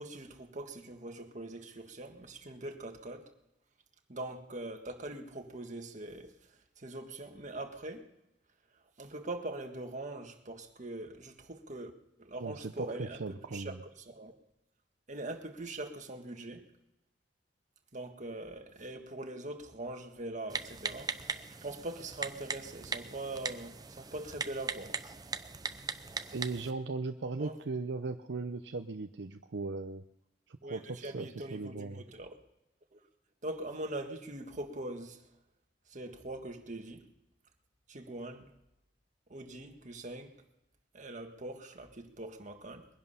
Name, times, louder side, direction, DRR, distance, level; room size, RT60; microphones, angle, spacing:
voice 1, 0.0-3.3 4.1-6.3 6.8-8.1 9.0-11.9 12.2-13.2 13.5-14.3 15.1-16.7 17.9-25.0 27.4-27.6 30.6-32.3 32.9-33.0 33.4-35.2 35.9-37.0 37.9-38.4 39.3-40.3 40.9-42.9, right 2 dB, 45° right, 1.7 m, -42 dB
voice 2, 12.4-13.8 26.3-30.0 30.5-32.0, right 3 dB, 70° right, 0.7 m, -38 dB
Typing, 20.5-26.7, right 4 dB, 20° right, 0.7 m, -40 dB
21.5 x 11.0 x 5.7 m
head